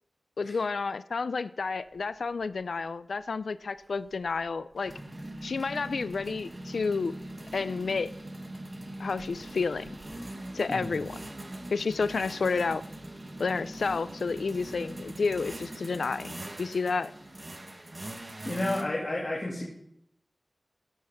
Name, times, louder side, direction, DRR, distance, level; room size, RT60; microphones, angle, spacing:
voice 1, 0.4-4.9 5.4-7.1 7.5-8.1 9.0-9.9 10.5-11.2 11.7-12.8 13.4-17.1, left 4 dB, 85° left, 15 dB, 0.3 m, -30 dB
sound 1, 2.0-2.1 2.4-2.6 3.9-18.8, right 1 dB, 40° right, 1.2 m, -42 dB
voice 2, 18.4-19.6, left 1 dB, 45° left, -3 dB, 2.2 m, -31 dB
15.5 x 6.6 x 3.5 m, 0.75 s
cardioid pair, 45°, 0 cm